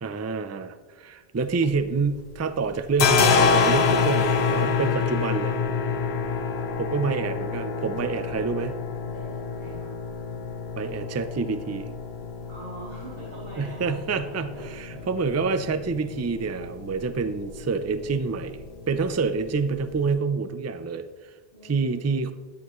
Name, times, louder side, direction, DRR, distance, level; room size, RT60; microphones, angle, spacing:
voice 1, 0.0-5.5 6.8-8.7 10.8-11.9 13.6-21.3 21.6-22.3, right 4 dB, 25° right, 10 dB, 0.3 m, -27 dB
sound 1, 1.4-2.3 2.6-20.1, left 5 dB, 75° left, 1.0 m, -28 dB
voice 2, 4.8-5.1 9.0-10.0 12.5-15.1 21.5-22.2, right 1 dB, 60° right, -9 dB, 3.6 m, -43 dB
11.5 x 9.8 x 3.1 m, 1.4 s
omnidirectional pair, 1.1 m